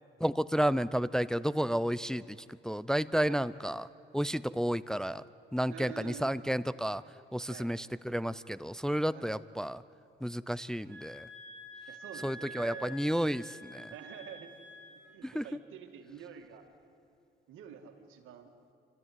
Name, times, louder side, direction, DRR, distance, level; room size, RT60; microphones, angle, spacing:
voice 1, 0.2-2.2 2.6-3.8 4.1-5.2 5.5-7.0 7.3-9.8 10.2-11.3 12.2-13.4 13.7-13.9 15.2-15.4, equal, 5° left, 15 dB, 0.4 m, -31 dB
voice 2, 5.7-6.3 7.5-7.7 9.1-9.3 11.9-13.0 13.9-14.6 15.1-16.7 17.5-18.5, right 8 dB, 85° right, 5 dB, 2.2 m, -48 dB
sound 1, 10.9-15.2, equal, 70° right, 2.9 m, -48 dB
28.0 x 13.5 x 9.5 m, 2.5 s
cardioid pair, 90°, 20 cm